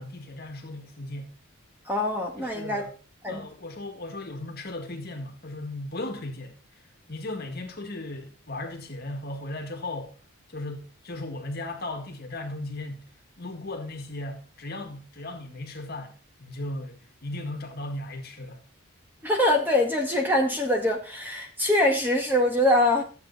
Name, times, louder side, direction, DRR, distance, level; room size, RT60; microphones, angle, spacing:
voice 1, 0.0-1.4 2.4-2.9 3.3-6.6 7.1-10.1 10.5-13.1 13.4-18.6, left 2 dB, 45° left, 2.0 m, -36 dB
voice 2, 1.9-2.9 3.2-3.4 19.2-23.0, left 1 dB, 10° right, 1.9 m, -23 dB
13.0 x 8.4 x 4.2 m
head